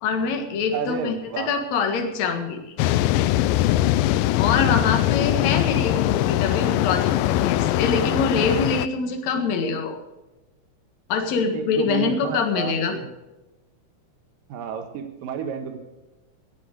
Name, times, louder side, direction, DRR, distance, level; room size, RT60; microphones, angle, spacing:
voice 1, 0.0-2.6 4.4-10.0 11.1-13.0, left 5 dB, 55° left, 5 dB, 2.7 m, -24 dB
voice 2, 0.7-1.5 4.6-5.0 11.5-13.1 14.5-15.8, right 6 dB, 80° right, 6 dB, 2.8 m, -31 dB
sound 1, 2.8-8.9, left 14 dB, 90° left, 2.3 m, -21 dB
17.5 x 8.7 x 6.5 m, 1.1 s
omnidirectional pair, 3.9 m